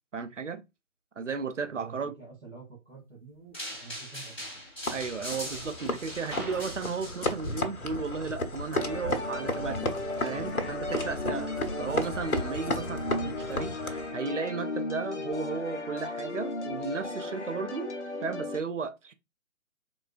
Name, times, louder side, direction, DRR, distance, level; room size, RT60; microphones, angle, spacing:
voice 1, 0.1-0.6 1.2-2.1 4.9-11.5 11.8-17.9 18.2-19.1, right 5 dB, 60° right, 0.5 m, -34 dB
voice 2, 1.6-4.6 11.3-11.5, right 4 dB, 85° right, 1.9 m, -49 dB
sound 1, 3.5-7.5, equal, 10° left, 0.8 m, -40 dB
sound 2, 4.9-14.1, left 1 dB, 85° left, 0.8 m, -34 dB
sound 3, 8.7-18.6, left 2 dB, 55° left, 0.6 m, -36 dB
3.7 x 2.3 x 2.4 m
figure-of-eight pair, 150°, 42 cm